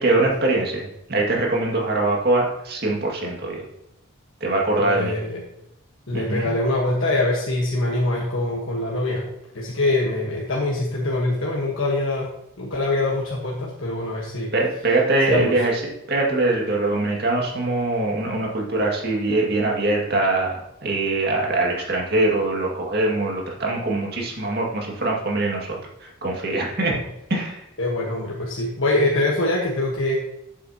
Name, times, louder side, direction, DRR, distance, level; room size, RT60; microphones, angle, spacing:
voice 1, 0.0-3.6 4.4-5.1 6.1-6.6 14.5-27.0 27.3-27.6, right 2 dB, 45° right, -2 dB, 2.1 m, -23 dB
voice 2, 4.8-5.4 6.1-9.2 9.5-12.3 12.6-14.5 15.3-15.6 26.9-27.0 27.8-30.2, left 2 dB, 65° left, -3 dB, 1.4 m, -24 dB
11.5 x 7.4 x 2.9 m, 0.86 s
head